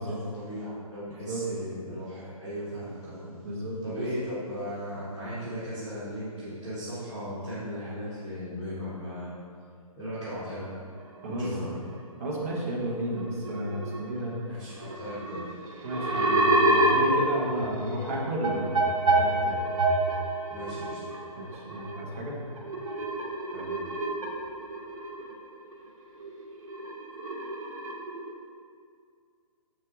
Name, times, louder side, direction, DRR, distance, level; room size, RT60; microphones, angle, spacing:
voice 1, 0.0-3.3 3.8-9.3 10.0-10.7 11.3-11.7 14.5-15.4 20.5-21.0 23.5-23.8, equal, 5° left, -15 dB, 0.4 m, -37 dB
voice 2, 3.4-4.0 11.2-11.5 12.2-14.3 15.8-19.6 21.4-22.4, right 1 dB, 25° right, -4 dB, 1.1 m, -32 dB
sound 1, 10.1-10.3 11.0-11.3 11.8-11.9 12.9-13.0 13.2-14.1 14.3-14.4 14.8-25.9 26.2-28.3, right 2 dB, 60° right, 1.5 m, -28 dB
7.4 x 6.4 x 3.6 m, 2.2 s
hypercardioid pair, 175°, 19 cm